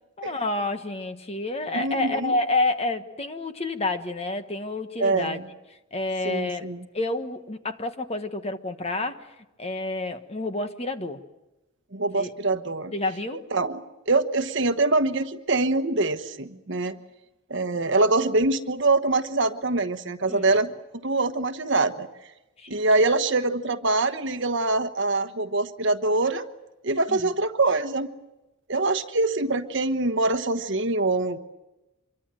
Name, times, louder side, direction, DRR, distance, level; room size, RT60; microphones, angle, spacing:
voice 1, 0.2-5.4 5.9-9.3 9.6-11.2 12.1-12.3 12.9-13.5 20.2-20.6 22.6-22.8 27.1-27.3, left 2 dB, 30° left, 8 dB, 1.3 m, -29 dB
voice 2, 1.7-2.3 5.0-5.4 6.2-6.8 11.9-12.9 13.5-17.0 17.5-20.7 21.0-22.1 22.7-26.4 26.8-28.1 28.7-31.4, right 2 dB, 55° right, 9 dB, 1.2 m, -24 dB
26.5 x 23.5 x 7.7 m, 0.99 s
head